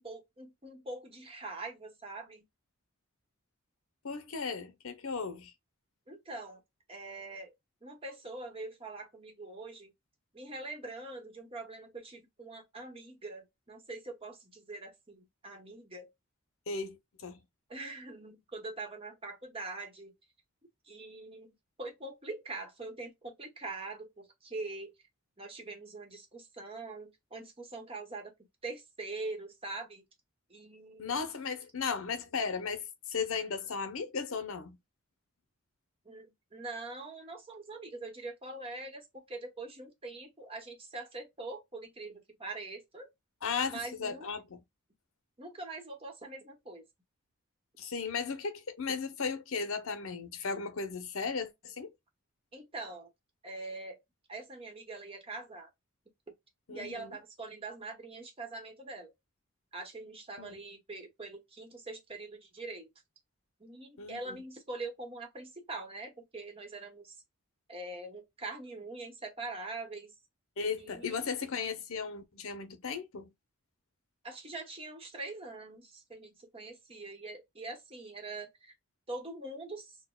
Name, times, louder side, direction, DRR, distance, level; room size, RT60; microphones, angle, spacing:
voice 1, 0.0-2.4 6.1-6.6 6.9-7.5 7.8-9.9 10.3-16.1 17.7-20.1 20.8-24.9 25.4-28.3 28.6-30.0 30.5-31.2 36.0-43.1 43.7-44.3 45.4-46.8 52.5-53.1 53.4-54.0 54.3-55.7 56.7-59.1 59.7-62.9 63.6-67.1 67.7-70.1 70.8-71.2 74.2-78.7 79.1-80.0, right 3 dB, 25° right, 0.9 m, -43 dB
voice 2, 4.0-5.5 16.7-17.4 31.0-34.8 43.4-44.6 47.8-51.9 56.7-57.2 60.4-60.6 64.0-64.4 70.6-73.3, left 5 dB, 70° left, 0.7 m, -36 dB
6.1 x 2.1 x 2.3 m
head